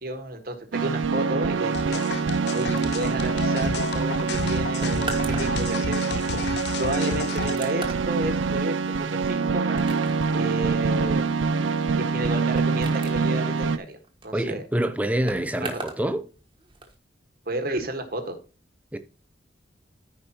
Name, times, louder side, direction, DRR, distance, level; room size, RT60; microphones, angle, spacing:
voice 1, 0.0-2.0 2.5-5.1 5.4-6.4 6.8-9.8 10.3-11.3 11.9-14.0 14.2-14.6 15.6-15.8 17.4-18.4, right 1 dB, 50° right, 1.5 m, -32 dB
sound 1, 0.7-13.8, right 4 dB, 85° right, 0.5 m, -25 dB
sound 2, 1.7-7.6, left 5 dB, 60° left, 0.5 m, -32 dB
sound 3, 2.8-16.1 16.3-16.9, right 3 dB, 25° right, 1.4 m, -40 dB
voice 2, 14.3-16.2 18.9-19.0, right 1 dB, 10° right, 0.6 m, -26 dB
14.0 x 5.2 x 2.9 m
head